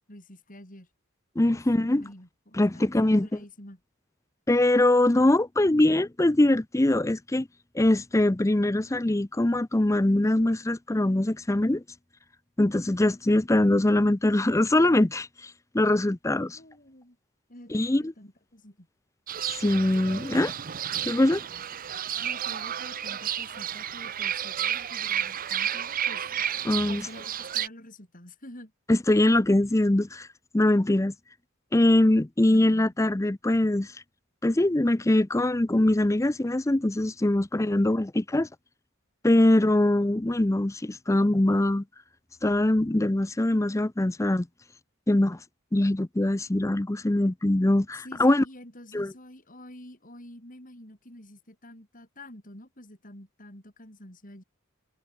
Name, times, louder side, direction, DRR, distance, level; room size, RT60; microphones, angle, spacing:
voice 1, 0.1-0.9 1.5-3.8 16.5-17.2 17.5-18.9 22.2-26.2 26.8-28.7 32.5-32.9 47.9-54.4, left 1 dB, 40° left, 8.0 m, -48 dB
voice 2, 1.4-2.0 2.6-3.3 4.5-7.5 7.7-11.8 12.6-16.6 17.7-18.1 19.6-20.5 21.0-21.4 26.6-27.0 28.9-30.3 30.5-31.1 31.7-33.9 34.4-38.5 39.2-41.8 42.4-44.5 45.1-45.4 45.7-48.4 48.9-49.1, left 1 dB, 15° left, 0.5 m, -22 dB
Fowl / Bird, 19.3-27.7, right 10 dB, 40° right, 0.7 m, -32 dB
head